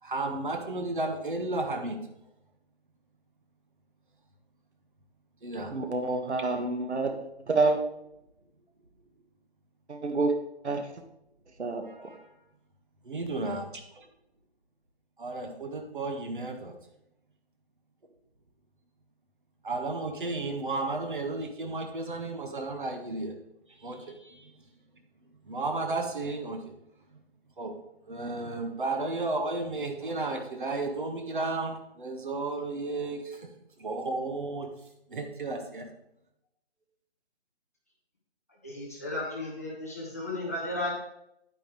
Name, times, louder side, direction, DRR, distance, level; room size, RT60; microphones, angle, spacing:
voice 1, 0.0-2.1 5.4-5.7 11.8-12.4 13.1-14.1 15.2-16.7 19.6-23.4 23.7-24.7 25.4-26.8 27.1-27.2 27.6-27.8 28.1-33.5 33.8-34.7 35.1-35.9, right 2 dB, 50° right, 4 dB, 1.5 m, -33 dB
voice 2, 5.7-7.8 9.9-10.3 10.6-10.9 11.6-12.1, right 3 dB, 90° right, 6 dB, 1.7 m, -28 dB
voice 3, 38.6-40.9, left 2 dB, 15° left, -5 dB, 1.0 m, -34 dB
9.7 x 9.0 x 3.2 m, 0.81 s
hypercardioid pair, 180°, 33 cm